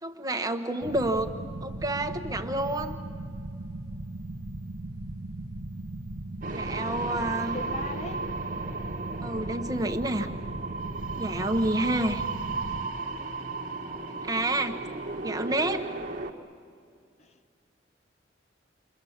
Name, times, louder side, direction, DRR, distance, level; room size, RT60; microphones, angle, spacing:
voice 1, 0.0-1.3 1.6-3.0 6.5-7.6 9.2-10.3 11.2-12.2 14.2-14.8 15.2-15.8, right 1 dB, 20° right, 1.1 m, -29 dB
sound 1, 0.8-12.9, right 2 dB, 90° right, 1.1 m, -38 dB
sound 2, 6.4-16.3, right 3 dB, 45° right, 1.4 m, -35 dB
voice 2, 7.5-8.3 17.2-17.3, left 2 dB, 35° left, 0.7 m, -39 dB
29.0 x 23.5 x 7.3 m
head